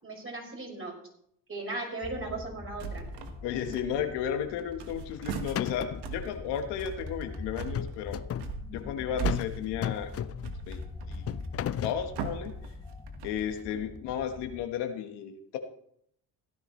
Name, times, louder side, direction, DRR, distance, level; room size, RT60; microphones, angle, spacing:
voice 1, 0.0-0.9 1.5-3.1 8.8-9.0, right 2 dB, 35° right, -1 dB, 5.6 m, -37 dB
sound 1, 2.0-14.7, left 3 dB, 15° left, 1.2 m, -43 dB
sound 2, 2.8-3.4 3.7-4.3 4.6-13.6, right 6 dB, 75° right, 1.5 m, -39 dB
voice 2, 3.4-8.2 8.7-10.1 10.7-10.8 11.1-11.2 11.8-12.5 13.2-15.6, left 9 dB, 90° left, 6 dB, 1.3 m, -33 dB
sound 3, 4.9-5.2 5.6-6.1 7.6-8.5 9.3-9.5 9.8-10.6 11.3-12.0, left 10 dB, 40° left, 0.5 m, -34 dB
16.0 x 10.5 x 3.1 m, 0.70 s
supercardioid pair, 75°, 40 cm